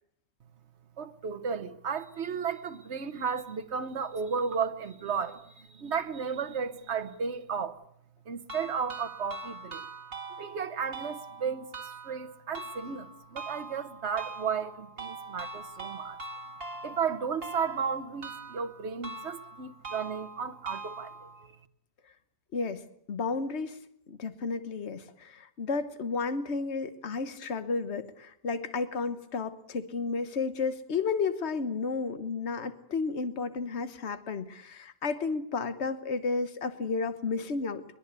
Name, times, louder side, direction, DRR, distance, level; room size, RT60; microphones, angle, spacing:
voice 1, 1.0-7.8 8.2-9.9 10.4-11.7 12.0-16.2 16.8-21.6, right 6 dB, 75° right, 1.5 m, -34 dB
sound 1, 8.5-21.5, right 3 dB, 60° right, 2.3 m, -43 dB
voice 2, 22.5-22.8 23.1-23.8 24.1-37.8, left 4 dB, 75° left, 1.5 m, -32 dB
22.5 x 21.0 x 8.2 m
omnidirectional pair, 1.1 m